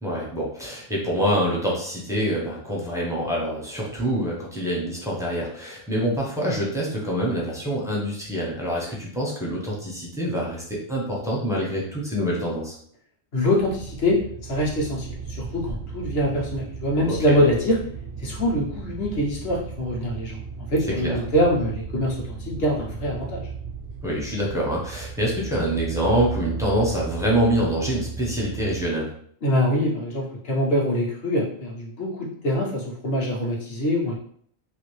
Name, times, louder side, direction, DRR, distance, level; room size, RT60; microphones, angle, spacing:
voice 1, 0.0-12.8 17.1-17.4 21.0-21.1 24.0-29.1, equal, 5° right, -4 dB, 0.5 m, -26 dB
voice 2, 13.3-14.2 14.5-17.8 18.2-23.5 29.4-34.1, left 1 dB, 55° left, -3 dB, 1.1 m, -24 dB
sound 1, 13.6-28.9, right 5 dB, 60° right, 0.6 m, -35 dB
2.8 x 2.6 x 3.1 m, 0.62 s
omnidirectional pair, 1.3 m